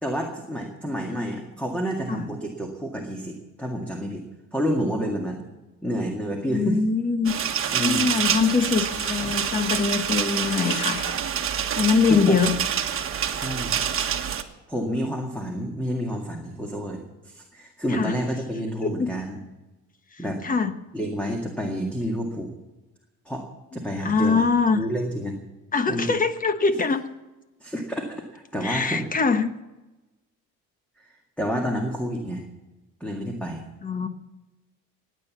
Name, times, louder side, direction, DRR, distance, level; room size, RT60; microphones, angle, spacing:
voice 1, 0.0-4.2 4.5-5.4 5.8-6.8 7.7-8.1 9.2-9.3 12.1-12.4 13.3-13.7 14.7-19.4 20.2-20.4 20.9-22.6 23.3-23.4 23.7-24.5 24.7-25.4 25.9-26.2 27.6-29.1 31.0-32.4 33.0-33.6, equal, 5° left, 1 dB, 2.0 m, -29 dB
voice 2, 6.5-7.3 7.8-11.0 11.8-12.6 17.9-18.1 18.8-19.1 20.4-20.7 24.0-24.8 25.7-27.0 28.6-29.5 33.8-34.1, left 5 dB, 25° left, 10 dB, 1.2 m, -23 dB
sound 1, 7.3-14.4, right 8 dB, 40° right, 1.4 m, -27 dB
sound 2, 8.7-12.3, left 8 dB, 55° left, 1.1 m, -41 dB
16.5 x 9.5 x 7.3 m, 1.1 s
cardioid pair, 125°, 32 cm